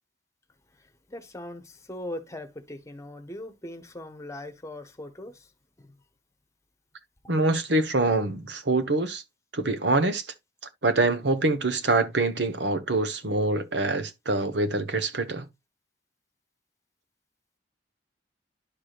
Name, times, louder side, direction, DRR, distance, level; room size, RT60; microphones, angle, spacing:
voice 1, 1.1-5.3 5.8-5.9, left 1 dB, 15° left, 1.1 m, -40 dB
voice 2, 7.3-9.2 9.5-10.3 10.8-15.5, right 2 dB, 70° right, 1.1 m, -25 dB
11.5 x 4.9 x 2.4 m
head